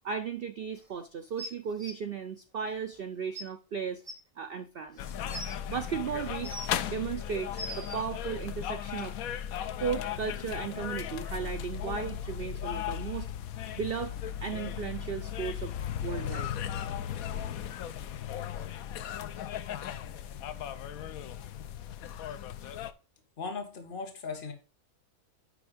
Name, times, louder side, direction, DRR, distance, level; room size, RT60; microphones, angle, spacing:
voice 1, 0.0-4.0 4.4-5.0 5.7-6.6 6.9-9.2 9.8-13.3 13.8-15.7 16.0-16.5 20.0-20.1, right 6 dB, 70° right, 9 dB, 0.5 m, -35 dB
sound 1, 1.4-1.9 3.0-3.1 3.3-3.4 4.0-4.1 4.9-5.5 6.2-6.8 7.3-8.0 9.0-9.1, right 1 dB, 20° right, 1.6 m, -40 dB
sound 2, 5.0-22.9, left 9 dB, 70° left, 1.1 m, -36 dB
voice 2, 23.4-24.5, left 4 dB, 35° left, 4 dB, 1.5 m, -37 dB
10.0 x 3.5 x 5.0 m, 0.34 s
omnidirectional pair, 1.6 m